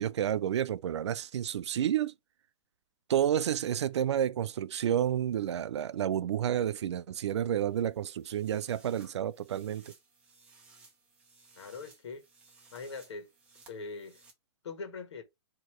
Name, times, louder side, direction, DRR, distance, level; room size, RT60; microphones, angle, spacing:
voice 1, 0.0-2.1 3.1-9.9, right 10 dB, 85° right, 0.4 m, -30 dB
sound 1, 7.6-14.3, right 3 dB, 10° right, 0.7 m, -60 dB
voice 2, 11.5-12.2 12.7-13.3 13.7-14.2 14.6-15.2, left 4 dB, 85° left, 1.4 m, -42 dB
4.3 x 2.9 x 3.1 m
hypercardioid pair, 170°, 14 cm